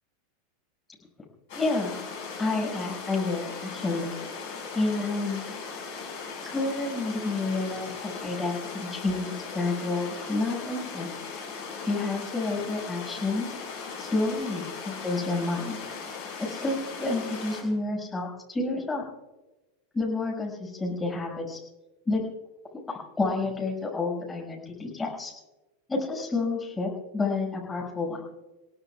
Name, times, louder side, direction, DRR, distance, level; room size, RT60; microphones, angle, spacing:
sound 1, 1.5-17.6, left 5 dB, 60° left, 5.1 m, -38 dB
voice 1, 1.5-1.9 2.4-4.1 4.7-5.6 6.4-11.1 11.8-13.5 14.0-15.8 16.4-19.0 19.9-21.6 22.1-22.2 22.9-25.3 25.9-28.3, left 3 dB, 15° left, -2 dB, 6.1 m, -29 dB
29.5 x 17.5 x 2.4 m, 1.1 s
figure-of-eight pair, 85°, 0 cm